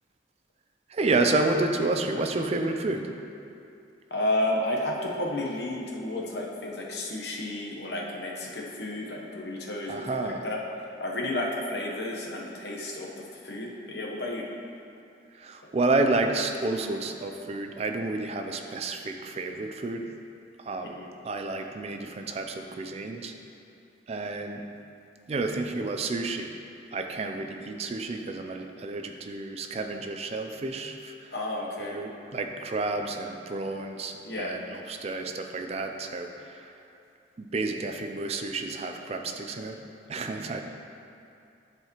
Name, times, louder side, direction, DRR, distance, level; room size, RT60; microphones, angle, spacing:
voice 1, 0.9-3.1 9.9-10.4 15.3-20.1 20.6-21.0 21.2-23.3 24.1-24.6 25.3-26.6 26.9-31.3 31.8-36.7 37.4-39.8 40.1-40.6, right 2 dB, 35° right, 5 dB, 0.4 m, -30 dB
voice 2, 4.1-10.6 11.0-14.4 20.8-21.1 31.3-32.0 34.2-34.6, left 1 dB, 65° left, -2 dB, 1.0 m, -32 dB
10.5 x 4.7 x 3.0 m, 2.6 s
head